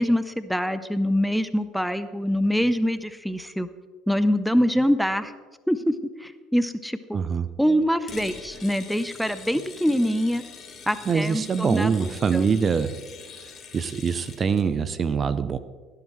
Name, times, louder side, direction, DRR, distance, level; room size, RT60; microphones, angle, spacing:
voice 1, 0.0-3.7 4.1-5.3 5.7-5.9 6.2-7.2 7.6-10.4 10.9-12.5, equal, ahead, 12 dB, 0.7 m, -24 dB
voice 2, 7.1-7.5 11.1-13.0 13.7-15.6, right 6 dB, 35° right, 13 dB, 0.6 m, -24 dB
sound 1, 8.1-14.7, left 5 dB, 40° left, 1.9 m, -43 dB
16.5 x 11.0 x 3.2 m, 1.4 s
hypercardioid pair, 70°, 0 cm